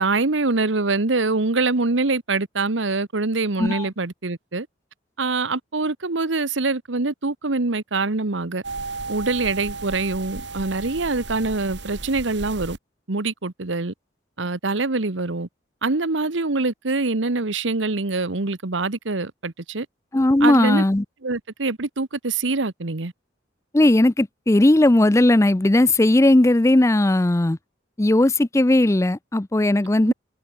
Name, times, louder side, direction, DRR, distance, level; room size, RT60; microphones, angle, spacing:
voice 1, 0.0-4.7 5.2-8.6 9.1-12.8 13.1-13.9 14.4-15.5 15.8-19.9 20.4-20.8 21.2-23.1 30.1-30.2, right 3 dB, 85° right, 1.3 m, -24 dB
sound 1, 8.6-12.8, right 3 dB, 70° right, 2.9 m, -34 dB
voice 2, 20.1-21.0 23.7-27.6 28.0-30.1, left 1 dB, 15° left, 0.5 m, -17 dB
head